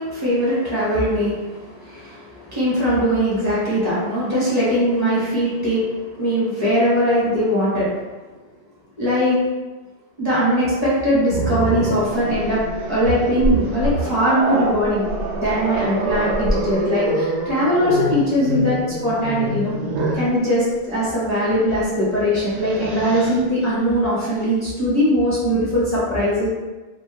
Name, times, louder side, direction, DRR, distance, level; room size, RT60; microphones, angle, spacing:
voice 1, 0.0-7.9 9.0-9.4 10.2-15.1 15.4-18.8 19.0-19.7 20.1-26.5, equal, 20° left, -10 dB, 0.6 m, -20 dB
Growling, 11.3-20.3 21.6-21.8 22.3-23.4, right 1 dB, 80° right, 0.9 m, -25 dB
2.2 x 2.1 x 2.9 m, 1.2 s
omnidirectional pair, 1.2 m